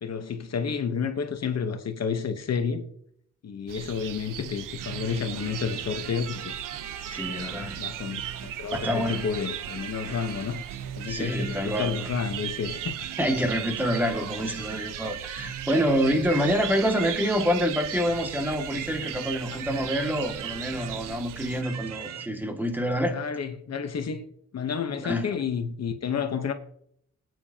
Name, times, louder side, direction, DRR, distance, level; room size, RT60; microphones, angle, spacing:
voice 1, 0.0-2.8 3.4-6.5 7.3-10.6 11.0-12.9 19.5-19.6 23.1-24.2 24.5-26.5, left 6 dB, 50° left, 1.1 m, -30 dB
sound 1, 3.7-21.6, right 13 dB, 80° right, 0.6 m, -38 dB
sound 2, 4.8-22.3, right 8 dB, 55° right, 0.9 m, -39 dB
voice 2, 7.1-7.8 8.7-9.3 11.1-11.9 13.2-23.2 25.0-25.4, equal, 5° right, 2.1 m, -27 dB
19.5 x 9.4 x 2.9 m
cardioid pair, 100°, 32 cm